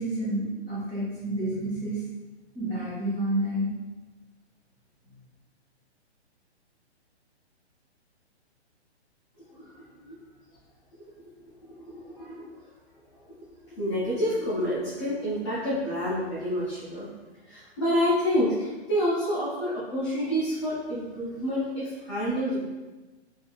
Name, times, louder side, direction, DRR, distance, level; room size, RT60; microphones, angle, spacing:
voice 1, 0.0-2.0 2.5-3.7, right 1 dB, 15° right, -12 dB, 1.1 m, -29 dB
voice 2, 9.5-10.1 11.9-12.5 13.8-17.1 17.5-22.6, equal, 25° left, -12 dB, 0.6 m, -28 dB
3.2 x 2.5 x 2.3 m, 1.2 s
hypercardioid pair, 165°, 34 cm